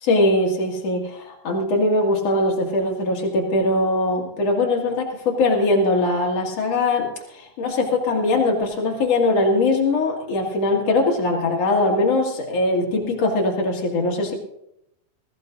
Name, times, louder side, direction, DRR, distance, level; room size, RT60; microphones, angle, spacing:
voice 1, 0.0-14.3, left 2 dB, 45° left, 0 dB, 2.6 m, -21 dB
20.5 x 15.5 x 2.6 m, 0.81 s
omnidirectional pair, 4.5 m